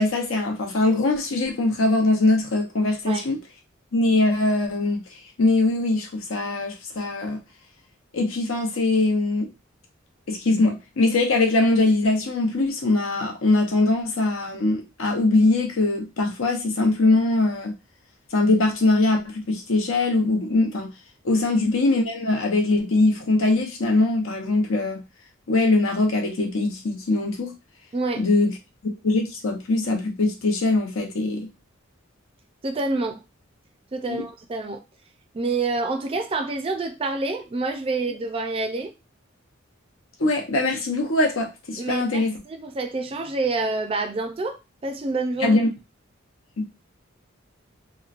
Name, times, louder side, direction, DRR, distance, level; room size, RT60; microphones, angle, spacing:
voice 1, 0.0-3.4 3.9-5.0 5.4-7.4 8.1-9.5 10.3-17.8 18.3-20.9 21.2-25.0 25.5-27.5 28.2-28.5 29.0-31.5 34.1-34.2 40.2-42.4 45.4-45.7 46.6-46.7, left 2 dB, 80° left, 0.7 m, -22 dB
voice 2, 27.9-28.2 32.6-33.2 33.9-34.8 35.3-38.9 41.8-45.6, right 3 dB, 25° right, 0.4 m, -27 dB
2.9 x 2.1 x 2.4 m
head